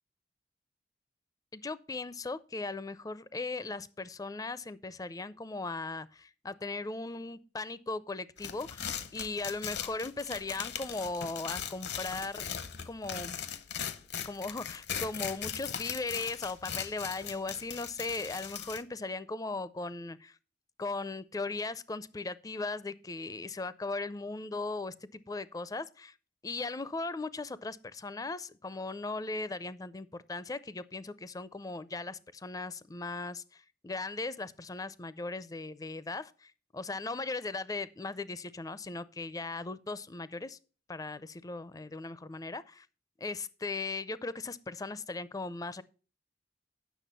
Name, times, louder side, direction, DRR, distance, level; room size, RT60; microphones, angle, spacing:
voice 1, 1.5-12.5 12.8-13.4 14.2-20.4 20.8-26.1 26.4-40.6 40.9-42.9 43.2-45.8, left 3 dB, 20° left, 0.4 m, -38 dB
sound 1, 8.4-18.8, left 8 dB, 65° left, 0.8 m, -39 dB
9.2 x 6.4 x 5.4 m
head